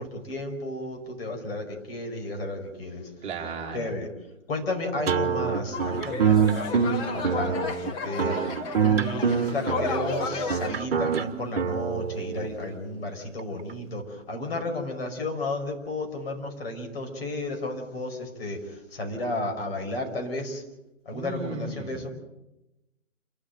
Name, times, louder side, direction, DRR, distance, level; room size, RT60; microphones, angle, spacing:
voice 1, 0.0-3.1 3.7-4.1 4.5-8.4 8.8-20.6 21.1-22.1, left 2 dB, 50° left, 3 dB, 5.4 m, -33 dB
voice 2, 3.2-3.8 21.1-22.1, right 3 dB, 15° right, 0 dB, 2.6 m, -35 dB
sound 1, 5.1-12.5, right 6 dB, 50° right, 1.4 m, -25 dB
sound 2, 5.7-10.8, left 4 dB, 10° left, 0.9 m, -33 dB
28.0 x 12.5 x 9.1 m, 0.96 s
figure-of-eight pair, 135°, 38 cm